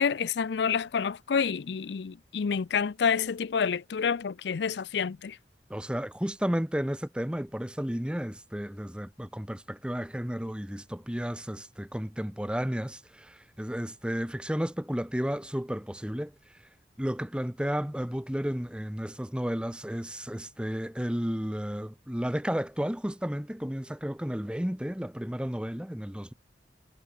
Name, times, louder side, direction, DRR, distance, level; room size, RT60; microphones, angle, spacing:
voice 1, 0.0-5.4, left 6 dB, 75° left, 0.5 m, -28 dB
voice 2, 5.7-16.6 17.0-26.3, equal, 5° right, 0.8 m, -32 dB
head